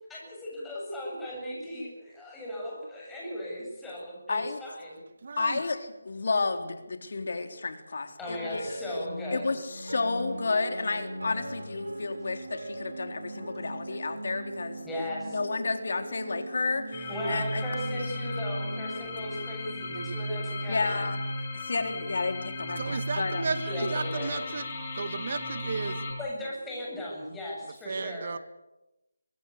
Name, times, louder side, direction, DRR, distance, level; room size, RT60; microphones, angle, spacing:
voice 1, 0.1-5.0 8.2-9.5 14.8-15.5 17.1-21.1 23.7-24.4 25.9-28.3, left 1 dB, 5° left, -4 dB, 8.0 m, -37 dB
voice 2, 4.3-4.6 5.4-5.8 6.1-8.7 9.3-14.8 15.3-17.6 20.7-21.2 21.5-23.4, left 3 dB, 60° left, 6 dB, 3.9 m, -31 dB
voice 3, 5.2-5.6 22.8-24.7 24.9-26.0 27.9-28.4, right 4 dB, 50° right, 12 dB, 1.9 m, -34 dB
sound 1, 8.2-20.5, right 1 dB, 75° right, 7.8 m, -40 dB
sound 2, 16.9-26.1, left 1 dB, 30° left, 6.6 m, -35 dB
25.0 x 20.0 x 8.6 m, 0.98 s
figure-of-eight pair, 160°, 0 cm